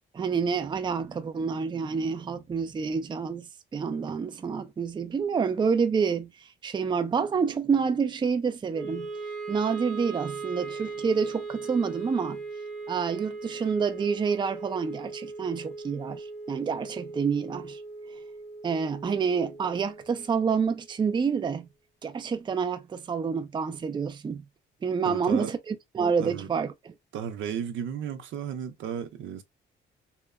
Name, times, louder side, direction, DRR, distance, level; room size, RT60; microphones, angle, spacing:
voice 1, 0.1-3.5 3.7-6.3 6.6-9.1 9.5-12.4 12.9-17.8 18.6-21.7 22.0-24.4 24.8-26.9, right 6 dB, 25° right, 0.4 m, -28 dB
Wind instrument woodwind instrument, 8.7-21.0, right 4 dB, ahead, 0.8 m, -39 dB
voice 2, 25.0-25.5 26.2-26.5 27.1-29.4, right 8 dB, 80° right, 0.6 m, -34 dB
2.8 x 2.1 x 2.3 m
cardioid pair, 90°, 20 cm